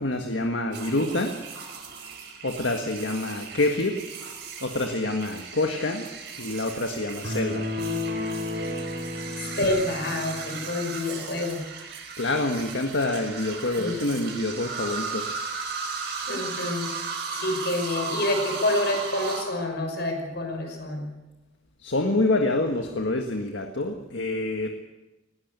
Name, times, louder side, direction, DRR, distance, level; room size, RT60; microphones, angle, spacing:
voice 1, 0.0-1.4 2.4-4.0 4.6-6.1 6.4-7.7 12.2-15.3 21.8-24.7, left 2 dB, 80° left, 4 dB, 1.6 m, -27 dB
sound 1, 0.7-19.4, right 5 dB, 65° right, 4.9 m, -36 dB
sound 2, 7.2-10.8, left 2 dB, 80° right, 4.4 m, -32 dB
voice 2, 9.4-11.6 13.8-14.0 16.3-16.9 17.3-21.1, left 1 dB, 60° left, 4 dB, 5.5 m, -28 dB
20.0 x 16.5 x 8.2 m, 1.1 s
head